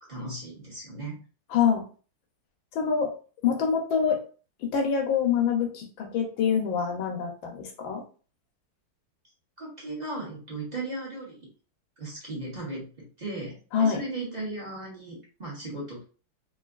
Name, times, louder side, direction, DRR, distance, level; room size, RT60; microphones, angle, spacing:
voice 1, 0.1-1.2 9.6-11.5 12.0-16.0, right 2 dB, 25° right, -5 dB, 1.2 m, -36 dB
voice 2, 1.5-1.8 2.7-3.1 3.4-4.2 4.6-8.0 13.7-14.0, left 7 dB, 70° left, 3 dB, 1.4 m, -25 dB
3.8 x 3.1 x 2.4 m, 0.37 s
omnidirectional pair, 2.4 m